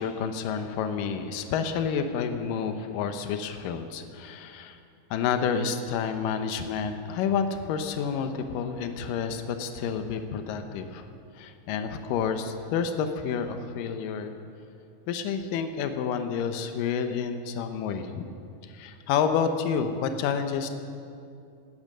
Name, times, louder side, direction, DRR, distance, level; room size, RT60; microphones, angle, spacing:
voice 1, 0.0-4.8 5.1-11.1 11.4-14.3 15.1-18.3 18.6-20.7, left 6 dB, 85° left, 7 dB, 2.5 m, -29 dB
18.0 x 11.5 x 6.6 m, 2.5 s
omnidirectional pair, 3.8 m